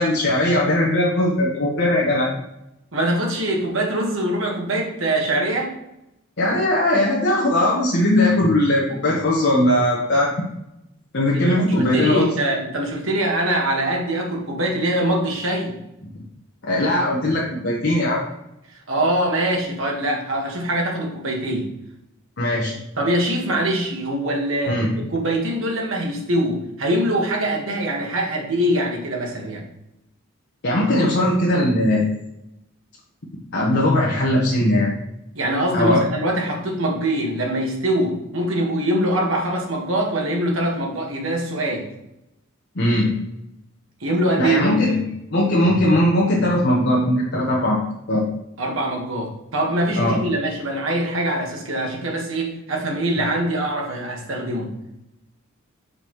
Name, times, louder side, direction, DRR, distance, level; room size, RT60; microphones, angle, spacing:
voice 1, 0.0-2.3 6.4-10.3 11.1-12.3 16.6-18.2 22.4-22.8 24.7-24.9 30.6-32.1 33.5-34.9 35.7-36.0 42.7-43.1 44.4-45.0 45.3-48.2 50.0-50.2, left 1 dB, 55° left, -5 dB, 1.1 m, -19 dB
voice 2, 2.9-5.7 11.3-15.8 18.9-21.7 23.0-29.6 35.3-41.9 44.0-44.8 48.6-54.7, right 1 dB, 65° right, 0 dB, 1.5 m, -23 dB
6.5 x 5.1 x 3.1 m, 0.87 s
head